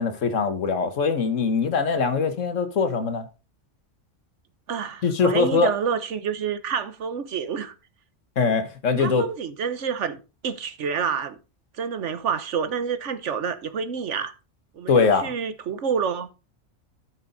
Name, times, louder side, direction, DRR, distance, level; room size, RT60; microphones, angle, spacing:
voice 1, 0.0-3.3 5.0-5.7 8.4-9.3 14.9-15.3, left 5 dB, 80° left, 1.6 m, -22 dB
voice 2, 4.7-7.7 9.0-11.4 11.8-14.3 14.7-16.3, right 6 dB, 70° right, 1.3 m, -28 dB
12.5 x 6.2 x 3.9 m
omnidirectional pair, 1.3 m